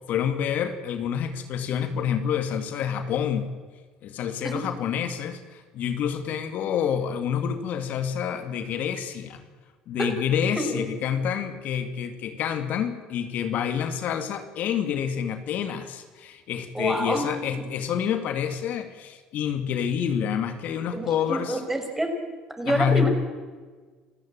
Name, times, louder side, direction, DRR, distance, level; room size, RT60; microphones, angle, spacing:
voice 1, 0.1-3.5 4.0-9.4 9.9-21.6 22.7-23.1, left 8 dB, 65° left, 8 dB, 2.2 m, -28 dB
voice 2, 16.7-17.3 20.9-22.1 22.6-23.1, right 1 dB, 10° right, 4 dB, 6.2 m, -27 dB
29.0 x 15.0 x 8.9 m, 1.5 s
supercardioid pair, 75°, 3 cm